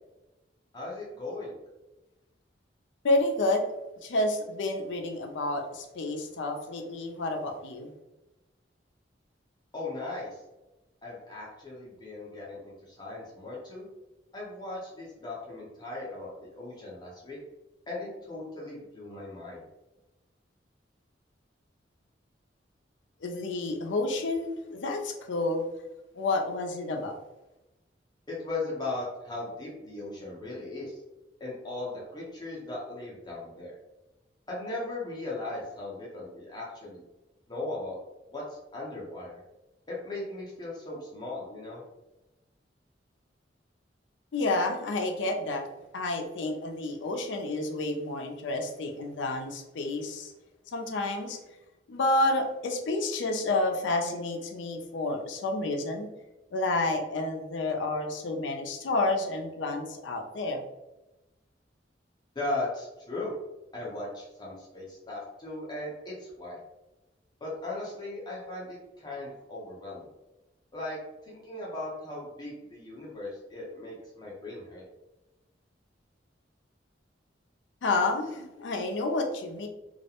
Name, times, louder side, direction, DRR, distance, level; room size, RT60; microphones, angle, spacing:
voice 1, 0.7-1.5 9.7-10.4 11.0-13.9 14.3-17.4 17.9-19.6 28.3-31.0 31.4-33.8 34.5-37.0 37.5-37.9 38.3-39.4 39.9-41.8 62.3-63.3 63.7-66.6 67.4-70.0 70.7-74.8, left 2 dB, 25° left, -6 dB, 0.6 m, -38 dB
voice 2, 3.0-3.6 4.0-7.9 23.2-25.6 26.1-27.2 44.3-45.7 45.9-50.3 50.7-51.4 51.9-56.1 56.5-60.6 77.8-79.7, left 2 dB, 85° left, 3 dB, 0.4 m, -29 dB
2.3 x 2.1 x 2.8 m, 1.0 s
head